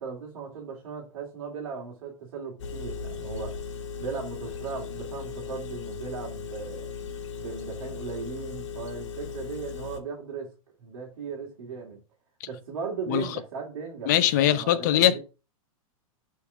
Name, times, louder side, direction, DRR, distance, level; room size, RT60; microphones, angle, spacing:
voice 1, 0.0-6.9 7.4-10.5 10.8-12.0 12.4-15.2, right 5 dB, 55° right, 2.7 m, -37 dB
Engine, 2.6-10.0, left 6 dB, 55° left, 1.4 m, -37 dB
voice 2, 14.1-15.2, left 12 dB, 30° left, 0.6 m, -21 dB
7.1 x 4.5 x 5.6 m
supercardioid pair, 180°, 18 cm